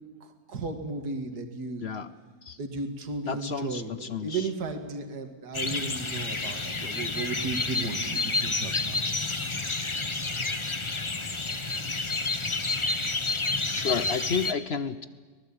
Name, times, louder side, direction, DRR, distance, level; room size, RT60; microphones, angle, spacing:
voice 1, 0.5-1.9 2.6-9.0 9.4-9.5, right 3 dB, 55° right, 5 dB, 2.7 m, -34 dB
voice 2, 3.3-4.5 13.7-15.1, left 6 dB, 55° left, 14 dB, 0.7 m, -31 dB
sound 1, 5.5-14.5, left 3 dB, 25° left, 0.7 m, -30 dB
24.5 x 19.5 x 8.7 m, 1.4 s
omnidirectional pair, 2.1 m